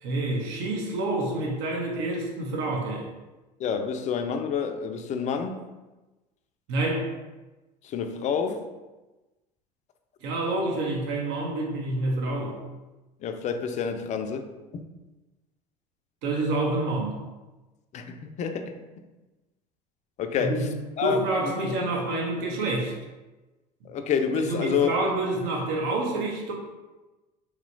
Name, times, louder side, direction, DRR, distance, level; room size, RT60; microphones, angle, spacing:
voice 1, 0.0-3.1 6.7-7.1 10.2-12.6 16.2-17.2 20.4-20.6 21.0-22.9 24.3-26.5, right 2 dB, 60° right, 0.8 m, -28 dB
voice 2, 3.6-5.6 7.8-8.6 13.2-14.8 17.9-18.8 20.2-20.7 21.0-21.2 23.8-25.0, left 7 dB, 35° left, 0.4 m, -28 dB
2.9 x 2.8 x 2.6 m
hypercardioid pair, 70°, 21 cm